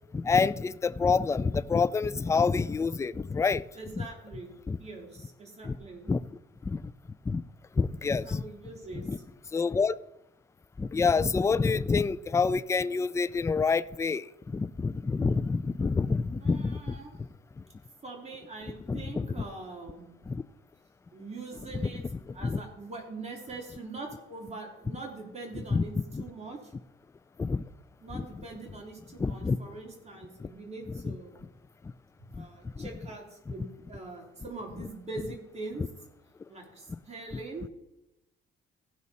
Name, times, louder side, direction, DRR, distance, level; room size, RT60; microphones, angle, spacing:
voice 1, 0.1-3.6 4.0-4.1 4.7-4.8 5.6-5.8 6.1-6.2 6.6-6.8 7.3-7.4 7.8-8.4 8.9-9.2 9.5-10.0 10.8-17.0 18.9-19.3 20.3-20.4 21.9-22.6 25.7-25.8 26.1-26.2 27.4-27.6 28.1-28.2 29.2-29.6 30.4-30.5 31.0-31.1 32.4-32.5 32.8-32.9 34.8-34.9, left 4 dB, 15° left, 0.3 m, -27 dB
voice 2, 3.7-4.5 4.8-6.1 8.1-9.1 16.4-17.1 18.0-20.1 21.1-22.0 22.3-25.9 26.2-26.7 28.0-31.4 32.2-35.8 36.5-37.7, right 3 dB, 30° right, 3.0 m, -43 dB
16.0 x 6.2 x 4.1 m
cardioid pair, 105°, 21 cm